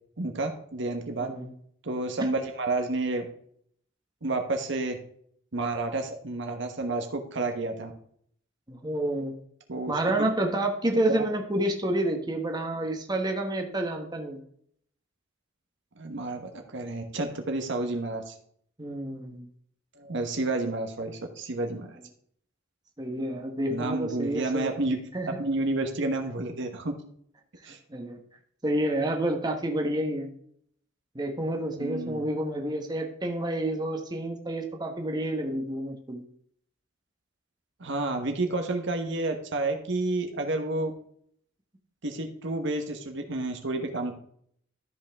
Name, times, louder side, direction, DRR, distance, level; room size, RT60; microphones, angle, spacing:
voice 1, 0.2-1.3 1.8-3.2 4.2-5.0 5.5-7.9 9.7-10.3 11.1-11.2 16.0-18.3 20.0-22.0 23.7-25.0 25.2-27.0 27.6-27.8 31.8-32.2 37.8-40.9 42.0-44.1, right 2 dB, 65° right, 5 dB, 1.2 m, -30 dB
voice 2, 8.7-9.3 9.9-14.4 18.8-19.5 23.0-24.7 25.1-25.4 27.9-28.2 28.6-30.3 31.1-36.2, right 1 dB, 20° right, 3 dB, 1.1 m, -29 dB
13.0 x 5.5 x 3.5 m, 0.65 s
head